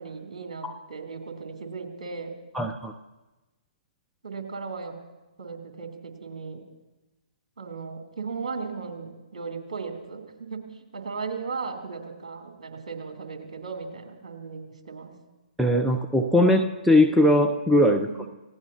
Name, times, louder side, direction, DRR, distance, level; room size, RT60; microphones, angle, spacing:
voice 1, 0.0-2.3 4.2-4.9 5.4-6.6 7.6-15.1 18.0-18.3, right 4 dB, 55° right, 3 dB, 3.3 m, -36 dB
voice 2, 2.5-2.9 15.6-18.3, left 1 dB, ahead, 4 dB, 0.6 m, -20 dB
29.0 x 16.5 x 2.9 m, 1.1 s
figure-of-eight pair, 130°, 4 cm